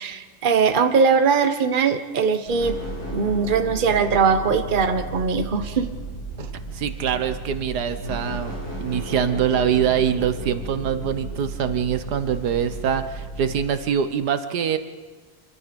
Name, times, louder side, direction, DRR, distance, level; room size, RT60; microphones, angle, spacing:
voice 1, 0.0-2.8 3.1-5.9 6.4-6.5, right 5 dB, 35° right, 8 dB, 1.2 m, -21 dB
sound 1, 2.5-13.6, right 2 dB, 75° left, 8.7 m, -34 dB
voice 2, 6.7-14.8, right 8 dB, 80° right, 10 dB, 1.6 m, -24 dB
26.5 x 22.0 x 5.3 m, 1.4 s
omnidirectional pair, 1.7 m